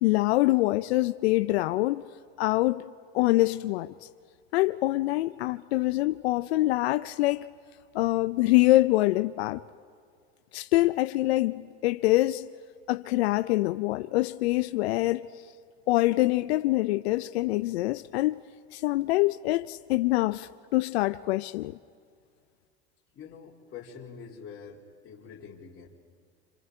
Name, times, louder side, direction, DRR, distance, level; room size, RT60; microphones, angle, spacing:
voice 1, 0.0-2.0 2.4-2.9 3.1-3.9 4.5-7.5 7.9-9.6 10.5-12.5 12.9-15.3 15.9-18.4 18.7-21.8, left 18 dB, 75° left, 0.6 m, -25 dB
voice 2, 23.1-25.9, left 6 dB, 45° left, 3.0 m, -45 dB
27.5 x 27.0 x 4.5 m
hypercardioid pair, 90°, 32 cm